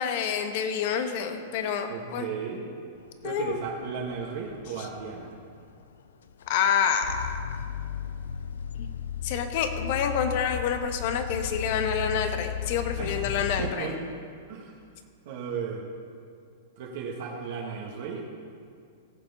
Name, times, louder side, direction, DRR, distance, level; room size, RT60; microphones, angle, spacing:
voice 1, 0.0-2.3 3.2-3.6 6.5-7.6 8.8-8.9 9.2-13.9, left 7 dB, 55° left, 7 dB, 1.2 m, -28 dB
voice 2, 1.9-2.6 3.2-5.3 12.9-14.0 14.5-14.8 15.2-15.8 16.8-18.3, right 6 dB, 60° right, -2 dB, 1.6 m, -35 dB
sound 1, 3.0-13.7, left 8 dB, 80° left, 0.5 m, -35 dB
17.5 x 7.6 x 4.2 m, 2.3 s
hypercardioid pair, 120°, 0 cm